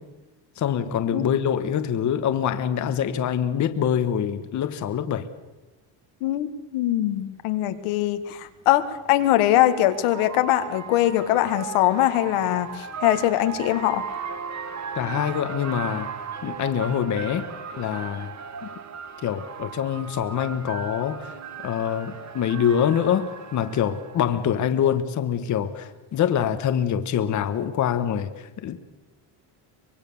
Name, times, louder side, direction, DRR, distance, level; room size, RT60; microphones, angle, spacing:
voice 1, 0.6-5.3 14.9-16.2 16.4-17.5 17.8-18.3 18.6-18.7 19.2-21.4 21.6-28.8, left 9 dB, 35° left, 1.2 m, -25 dB
voice 2, 6.2-14.0, left 14 dB, 85° left, 1.9 m, -22 dB
sound 1, 7.4-7.5 8.9-24.5, right 6 dB, 35° right, 1.7 m, -37 dB
24.5 x 22.0 x 7.0 m
cardioid pair, 165°, 49 cm